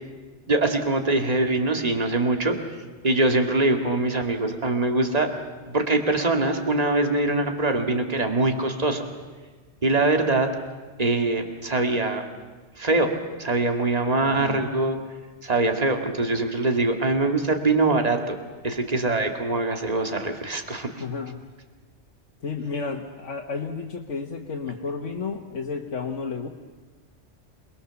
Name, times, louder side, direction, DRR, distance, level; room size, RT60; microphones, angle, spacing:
voice 1, 0.5-2.6 3.0-5.3 5.7-9.0 9.8-10.5 11.0-12.2 12.8-13.1 13.4-15.0 15.4-18.4 18.6-21.0, right 2 dB, 30° right, 4 dB, 2.2 m, -23 dB
voice 2, 14.3-14.7 21.0-21.5 22.4-26.5, left 5 dB, 80° left, 2 dB, 1.7 m, -32 dB
28.0 x 21.5 x 7.0 m, 1.4 s
omnidirectional pair, 1.2 m